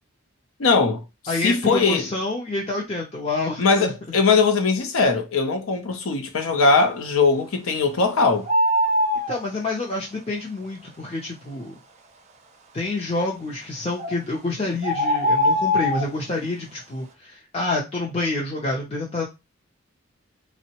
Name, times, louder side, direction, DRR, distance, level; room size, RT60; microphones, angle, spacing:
voice 1, 0.6-1.0 1.4-2.0 3.6-8.5, left 4 dB, 85° left, 0.6 m, -20 dB
voice 2, 1.3-3.9 9.3-11.8 12.7-19.3, left 2 dB, 30° left, 0.5 m, -28 dB
sound 1, 8.5-9.4 14.0-14.1 14.8-16.1, left 1 dB, 35° right, 0.4 m, -21 dB
3.5 x 2.0 x 2.8 m
head